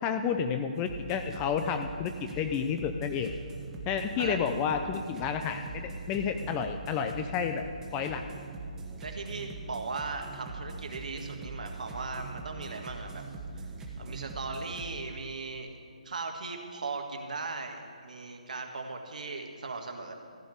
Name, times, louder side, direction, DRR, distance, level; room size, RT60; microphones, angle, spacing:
voice 1, 0.0-3.3 3.9-7.6 7.9-8.2, left 7 dB, 20° left, 7 dB, 0.5 m, -31 dB
sound 1, 0.7-14.9, right 3 dB, 10° right, 1.3 m, -42 dB
voice 2, 9.0-13.2 13.5-13.6 14.0-15.7 16.0-20.1, right 4 dB, 70° right, 4 dB, 1.7 m, -38 dB
15.0 x 5.2 x 9.4 m, 2.1 s
figure-of-eight pair, 150°, 4 cm